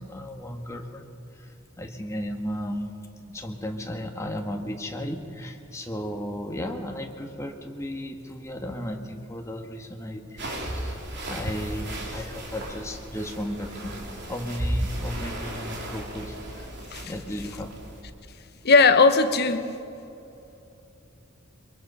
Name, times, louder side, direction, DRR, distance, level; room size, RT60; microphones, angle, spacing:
voice 1, 0.0-2.9 3.3-11.0 11.2-14.0 14.3-16.7 17.0-17.7, equal, 15° left, 3 dB, 1.6 m, -35 dB
sound 1, 10.4-18.0, right 1 dB, 55° right, 3.6 m, -35 dB
voice 2, 18.6-19.8, left 4 dB, 50° left, 9 dB, 1.1 m, -18 dB
23.0 x 22.5 x 5.6 m, 2.8 s
head